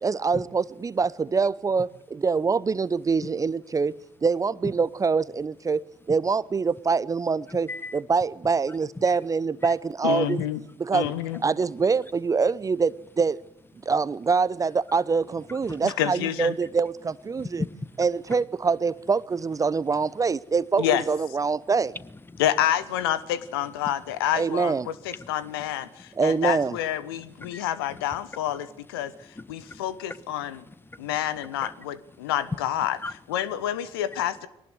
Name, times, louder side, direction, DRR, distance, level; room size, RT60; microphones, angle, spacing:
voice 1, 0.0-10.4 10.8-11.1 11.4-13.4 13.9-17.6 18.0-22.0 24.3-24.9 26.2-26.8, right 5 dB, 25° right, 0.8 m, -25 dB
voice 2, 7.5-8.0 9.6-9.7 15.5-15.8 17.3-18.0 22.3-22.4 23.8-23.9 25.2-25.3 25.9-26.2 27.2-27.6 27.9-28.0 29.0-29.8 30.1-30.2 30.5-31.1 31.6-31.8 33.0-33.1, left 3 dB, 15° left, 1.4 m, -38 dB
voice 3, 10.0-10.6 10.9-11.4 15.8-16.5 20.8-21.0 22.4-24.7 25.3-29.1 29.5-30.6 31.0-33.0 33.3-34.5, left 11 dB, 70° left, 1.3 m, -28 dB
23.5 x 19.0 x 8.0 m
figure-of-eight pair, 45°, 13 cm